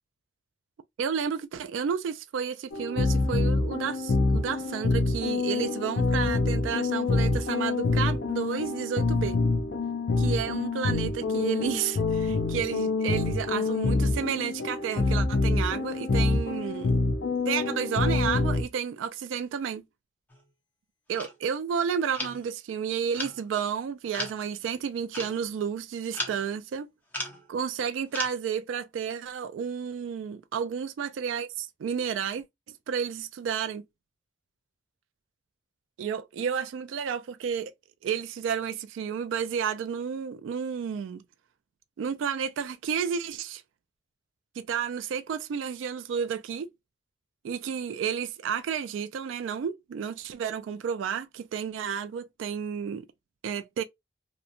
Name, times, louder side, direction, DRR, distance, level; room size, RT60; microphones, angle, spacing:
voice 1, 1.0-9.4 10.2-16.9 17.5-19.8 21.1-26.9 27.5-32.4 32.9-33.8 36.0-37.7 38.0-41.2 42.0-43.6 44.6-46.7 47.4-53.1 53.4-53.8, right 7 dB, 85° right, 0.3 m, -31 dB
sound 1, 2.7-18.6, left 3 dB, 65° left, 0.5 m, -26 dB
sound 2, 20.3-20.4 21.1-21.3 22.1-22.5 23.1-23.4 24.1-24.4 25.1-25.4 26.1-26.5 27.1-27.5 28.1-28.3, left 1 dB, 10° left, 0.8 m, -35 dB
2.9 x 2.1 x 2.4 m
head